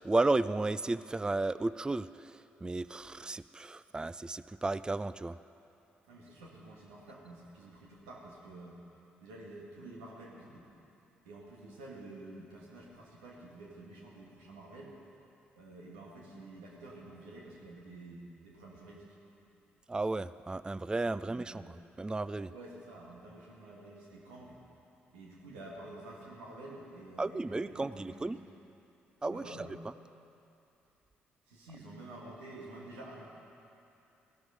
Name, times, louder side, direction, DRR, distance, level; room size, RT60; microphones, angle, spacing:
voice 1, 0.0-5.4 19.9-22.5 27.2-28.4 29.2-29.7, right 2 dB, 15° right, 15 dB, 0.4 m, -33 dB
voice 2, 6.1-8.8 9.2-10.7 11.3-15.0 15.6-19.1 21.2-21.7 22.5-24.6 25.1-28.4 29.3-29.7 31.5-33.3, right 2 dB, 85° right, -3 dB, 2.2 m, -49 dB
16.0 x 12.0 x 5.2 m, 2.8 s
hypercardioid pair, 50°, 5 cm